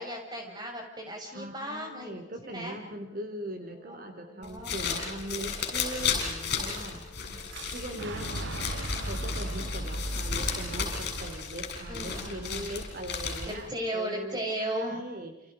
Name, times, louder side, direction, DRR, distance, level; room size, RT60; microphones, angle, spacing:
voice 1, 0.0-2.1 2.4-2.8 3.8-4.0 4.3-4.7 7.2-7.5 11.9-12.6 13.5-15.0, right 1 dB, 20° right, 2 dB, 6.1 m, -36 dB
voice 2, 1.3-7.0 7.7-8.6 9.0-15.5, right 1 dB, 45° right, 6 dB, 3.4 m, -40 dB
sound 1, 2.0-11.0, left 7 dB, 10° left, 6.6 m, -57 dB
sound 2, 4.4-13.7, left 6 dB, 50° left, 7.8 m, -34 dB
Fire / Explosion, 7.5-13.4, right 1 dB, 65° right, 1.7 m, -38 dB
29.0 x 29.0 x 5.1 m, 0.91 s
head